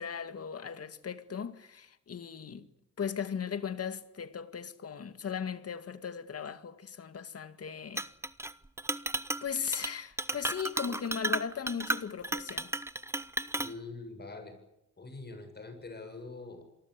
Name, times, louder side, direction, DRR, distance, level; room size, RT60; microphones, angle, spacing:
voice 1, 0.0-2.7 3.0-8.1 9.4-12.7, left 7 dB, 50° left, 2.2 m, -37 dB
Chink clink, 8.0-8.5 8.8-9.5 9.7-9.9 10.2-13.7, right 1 dB, 10° right, 1.0 m, -33 dB
voice 2, 13.5-14.6 15.0-16.6, left 3 dB, 30° left, 7.8 m, -44 dB
27.0 x 20.0 x 8.4 m
cardioid pair, 95°, 31 cm